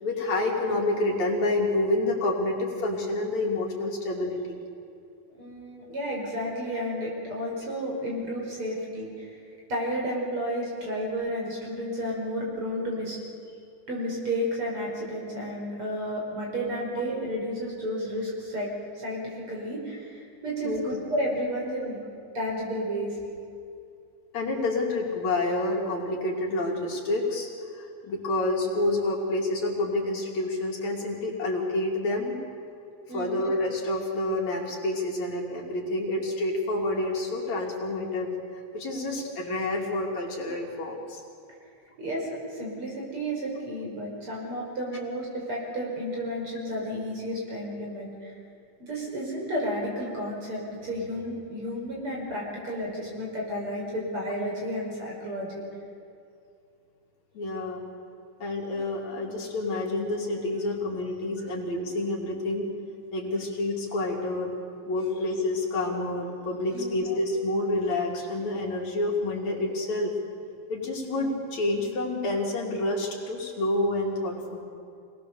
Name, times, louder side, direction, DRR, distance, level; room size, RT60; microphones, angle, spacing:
voice 1, 0.0-4.6 20.6-21.0 24.3-32.4 33.1-38.3 38.7-41.2 57.3-57.8 58.4-62.7 63.1-64.5 64.8-70.1 70.7-74.6, left 2 dB, 65° left, -1 dB, 3.9 m, -28 dB
voice 2, 5.4-9.4 9.7-13.2 13.9-18.7 18.9-22.0 22.3-23.2 33.1-33.4 42.0-48.3 48.8-55.6 66.7-67.0, equal, 45° right, -2 dB, 6.0 m, -32 dB
26.0 x 19.0 x 7.0 m, 2.5 s
omnidirectional pair, 3.4 m